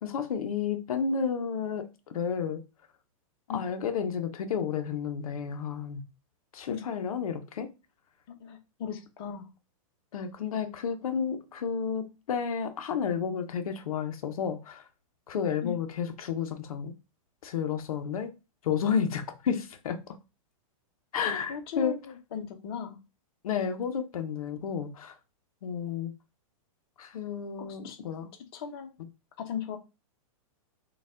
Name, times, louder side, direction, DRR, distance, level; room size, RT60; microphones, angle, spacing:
voice 1, 0.0-1.9 2.1-2.6 3.5-6.0 6.5-7.7 10.1-14.8 15.3-16.9 17.4-18.3 18.6-20.2 21.1-22.0 23.4-25.2 25.6-26.1 27.0-28.3, left 7 dB, 90° left, 0.7 m, -31 dB
voice 2, 8.3-9.5 15.6-15.8 21.3-23.0 27.6-28.0 28.5-28.9 29.4-29.8, left 8 dB, 45° left, 0.8 m, -37 dB
4.3 x 2.4 x 3.6 m
supercardioid pair, 165°, 18 cm